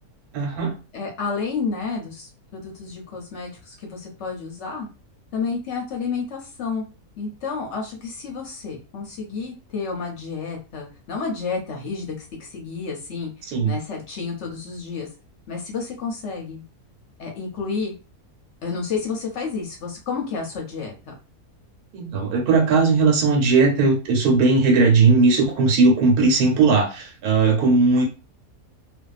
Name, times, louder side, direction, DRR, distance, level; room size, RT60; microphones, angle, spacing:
voice 1, 0.3-0.7 13.5-13.7 21.9-28.0, right 4 dB, 80° right, 2 dB, 1.3 m, -18 dB
voice 2, 0.9-4.9 5.3-6.8 7.2-15.1 15.5-16.6 17.2-17.9 18.6-21.1, left 5 dB, 60° left, 0 dB, 0.8 m, -30 dB
2.6 x 2.3 x 2.4 m, 0.32 s
omnidirectional pair, 1.6 m